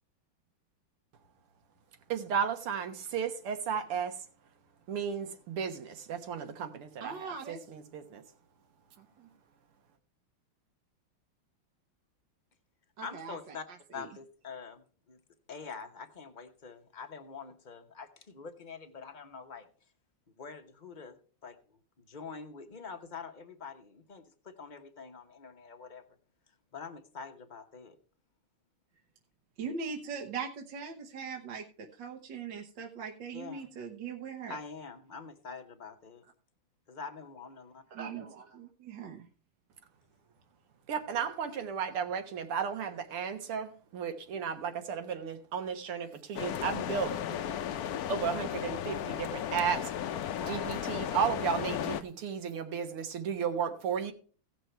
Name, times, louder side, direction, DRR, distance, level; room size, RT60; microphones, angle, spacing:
voice 1, 2.1-4.2 4.9-8.2 40.9-47.2 48.1-49.9 50.4-54.1, right 7 dB, 80° right, 2.1 m, -34 dB
voice 2, 7.0-7.6 9.0-9.3 13.0-14.1 29.6-34.6 37.9-39.3, right 5 dB, 60° right, 1.6 m, -41 dB
voice 3, 13.0-13.6 13.9-15.2 15.5-19.7 20.4-21.2 21.4-21.6 22.1-26.0 26.7-27.9 33.3-33.7 34.5-36.2 36.9-37.8 50.4-50.8, left 5 dB, 40° left, 0.7 m, -45 dB
sound 1, 46.3-52.0, left 10 dB, 90° left, 0.8 m, -35 dB
16.5 x 6.1 x 4.5 m
omnidirectional pair, 2.4 m